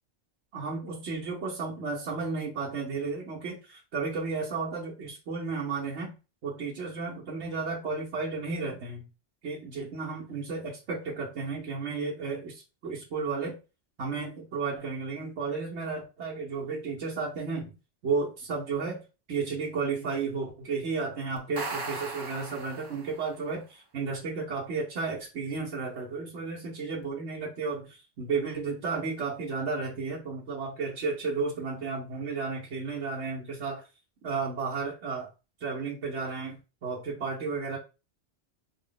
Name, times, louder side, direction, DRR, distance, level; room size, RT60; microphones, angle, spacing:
voice 1, 0.5-6.1 6.4-9.1 9.4-13.6 14.0-17.7 18.0-19.0 19.3-33.8 34.2-35.3 35.6-37.8, right 4 dB, 75° right, -4 dB, 1.1 m, -33 dB
sound 1, 21.4-23.3, right 3 dB, 35° right, 0.4 m, -37 dB
4.3 x 2.0 x 3.8 m, 0.30 s
omnidirectional pair, 1.2 m